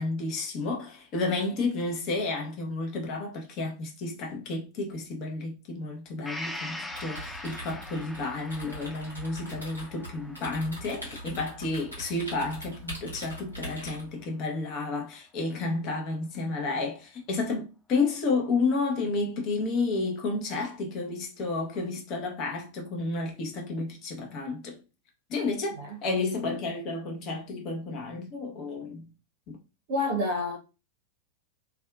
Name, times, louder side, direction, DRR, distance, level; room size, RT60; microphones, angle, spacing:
voice 1, 0.0-24.8 25.3-29.1 29.5-29.6, left 3 dB, 40° left, 0.8 m, -31 dB
Gong, 6.2-13.9 14.3-14.4, left 1 dB, 5° left, 0.3 m, -43 dB
sound 1, 6.9-14.2, equal, 85° left, 1.1 m, -42 dB
voice 2, 29.9-30.6, left 1 dB, 50° right, 0.7 m, -28 dB
2.7 x 2.3 x 2.2 m
figure-of-eight pair, 90°, 0 cm